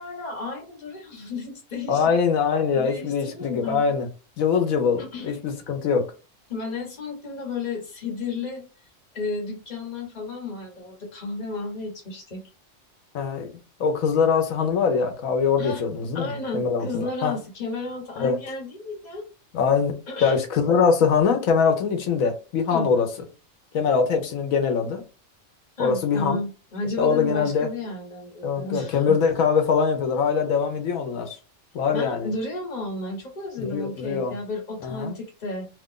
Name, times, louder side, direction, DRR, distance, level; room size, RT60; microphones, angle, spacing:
voice 1, 0.0-2.1 2.7-4.0 5.0-5.3 6.5-8.7 9.1-12.4 15.6-15.8 16.1-19.3 20.1-20.4 22.7-22.9 25.8-29.2 31.9-35.7, left 3 dB, 35° left, 1.2 m, -33 dB
voice 2, 1.9-4.1 4.4-6.0 13.1-13.5 13.8-17.3 18.2-18.4 19.5-19.9 20.2-23.1 23.7-25.0 25.8-26.4 27.0-27.7 28.4-31.4 31.7-32.3 33.6-34.3 34.8-35.1, left 6 dB, 90° left, 1.2 m, -23 dB
2.9 x 2.5 x 3.6 m
omnidirectional pair, 1.4 m